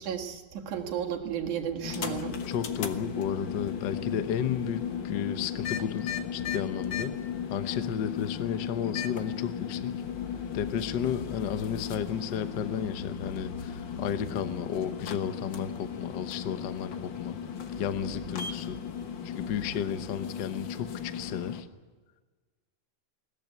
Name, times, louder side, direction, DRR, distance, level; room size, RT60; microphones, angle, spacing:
voice 1, 0.0-2.4, right 8 dB, 75° right, 2 dB, 3.2 m, -33 dB
sound 1, 1.8-21.6, left 7 dB, 50° left, 1.5 m, -36 dB
voice 2, 2.5-7.2 7.5-10.0 10.5-17.4 17.8-18.8 19.2-21.7, left 8 dB, 85° left, 10 dB, 0.9 m, -33 dB
21.0 x 17.0 x 9.5 m, 1.3 s
omnidirectional pair, 3.5 m